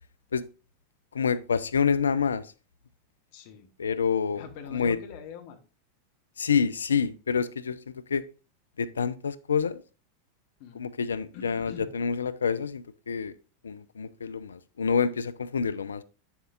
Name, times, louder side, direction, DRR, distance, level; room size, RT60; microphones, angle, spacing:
voice 1, 1.1-2.5 3.8-4.4 4.7-5.0 6.4-7.8 8.1-8.2 8.8-9.8 10.8-13.3 13.6-16.0, left 6 dB, 80° left, 15 dB, 0.4 m, -27 dB
voice 2, 3.3-3.7 4.3-5.6 10.6-10.8 11.3-11.9, left 7 dB, 55° left, 7 dB, 1.3 m, -43 dB
9.2 x 7.2 x 2.4 m, 0.34 s
figure-of-eight pair, 90°, 0 cm